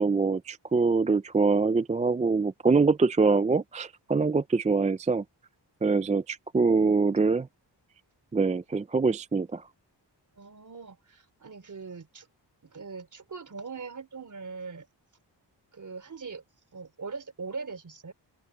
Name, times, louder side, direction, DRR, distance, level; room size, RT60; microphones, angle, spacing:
voice 1, 0.0-5.2 5.8-7.5 8.3-9.6, right 4 dB, 20° right, 0.3 m, -24 dB
voice 2, 10.4-12.3 12.6-14.9 15.7-16.4 16.7-18.1, right 4 dB, 45° right, 3.5 m, -41 dB
open air
wide cardioid pair, 175°, 43 cm